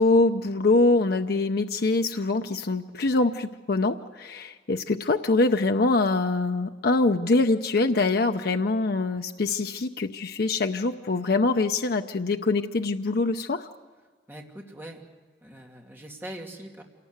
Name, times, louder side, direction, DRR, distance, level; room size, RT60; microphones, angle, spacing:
voice 1, 0.0-13.7, left 3 dB, 60° left, 6 dB, 0.7 m, -24 dB
voice 2, 14.3-15.1 15.4-16.8, right 1 dB, 10° right, 0 dB, 2.6 m, -42 dB
27.0 x 18.5 x 8.1 m, 1.5 s
head